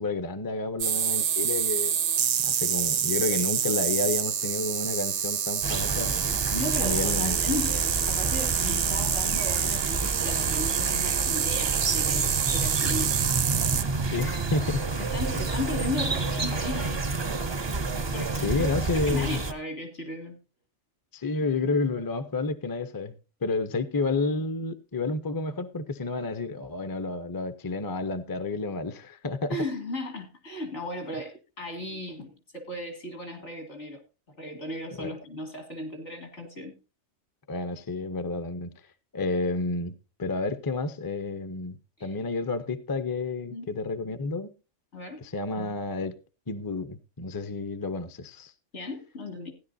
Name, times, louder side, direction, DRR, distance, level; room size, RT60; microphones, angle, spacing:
voice 1, 0.0-2.0 2.5-6.2 6.8-7.4 14.1-14.8 18.4-19.4 21.1-23.1 23.4-29.6 35.0-35.1 37.5-38.7 39.1-44.5 45.2-46.2 46.5-48.5, left 3 dB, 25° left, 0.5 m, -30 dB
sound 1, 0.8-13.8, right 8 dB, 70° right, 1.0 m, -27 dB
sound 2, 5.6-19.5, right 3 dB, 30° right, 0.5 m, -30 dB
voice 2, 6.5-13.1 15.0-17.0 18.1-20.4 29.5-34.0 34.4-36.8 42.0-42.1 43.5-43.7 44.9-45.2 48.7-49.5, left 1 dB, 70° left, 2.6 m, -36 dB
15.5 x 10.5 x 2.6 m
omnidirectional pair, 1.3 m